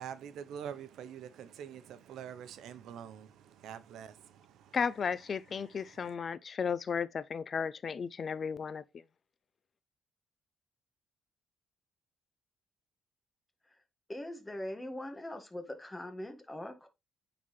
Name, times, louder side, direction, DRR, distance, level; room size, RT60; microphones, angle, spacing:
voice 1, 0.0-4.8 5.5-6.1, right 8 dB, 80° right, 0.7 m, -46 dB
voice 2, 4.7-8.8, left 6 dB, 45° left, 0.5 m, -34 dB
voice 3, 14.1-16.9, left 1 dB, 15° left, 1.6 m, -41 dB
9.4 x 3.9 x 3.1 m
cardioid pair, 90°, 0 cm